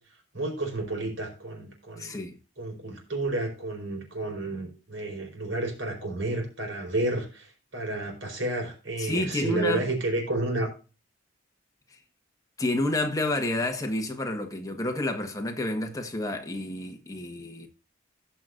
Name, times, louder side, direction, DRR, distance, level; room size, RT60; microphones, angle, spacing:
voice 1, 0.3-2.1 2.6-10.7, right 2 dB, 70° right, 4.7 m, -31 dB
voice 2, 2.0-2.4 9.0-9.9 12.6-17.7, left 1 dB, 15° left, 1.4 m, -29 dB
18.0 x 6.1 x 2.6 m
head